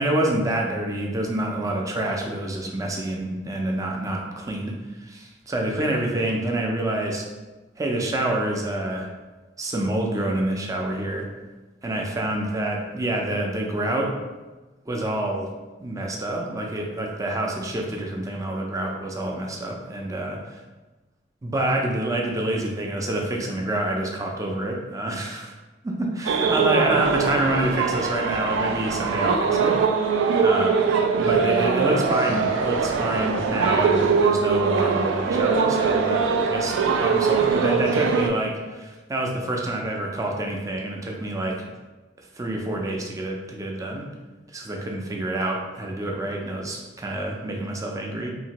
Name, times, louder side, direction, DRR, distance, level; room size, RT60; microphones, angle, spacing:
voice 1, 0.0-4.7 5.1-7.2 7.8-9.1 9.6-11.3 11.8-14.1 14.9-15.5 15.8-20.4 21.4-25.5 25.8-29.9 30.4-30.7 31.2-41.7 42.4-44.1 44.5-48.3, right 1 dB, 20° right, 0 dB, 0.4 m, -27 dB
sound 1, 26.3-38.3, right 5 dB, 90° right, 0.3 m, -22 dB
2.8 x 2.5 x 2.9 m, 1.2 s
head